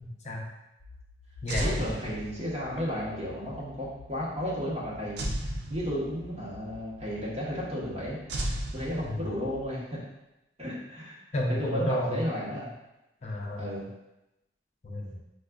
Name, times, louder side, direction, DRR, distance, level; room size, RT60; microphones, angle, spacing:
voice 1, 0.0-0.4 1.4-1.8 9.0-9.3 11.3-12.2 13.2-13.7 14.8-15.2, equal, 40° left, -1 dB, 0.4 m, -31 dB
sound 1, 0.8-9.7, left 4 dB, 90° left, 0.5 m, -51 dB
sound 2, 1.5-2.7 5.2-6.4 8.3-9.6, right 1 dB, 70° right, 0.4 m, -34 dB
voice 2, 1.6-5.3 5.7-10.0 10.6-11.2 11.5-12.7 13.6-13.9, equal, 35° right, -7 dB, 1.0 m, -33 dB
4.7 x 2.3 x 2.2 m, 0.93 s
head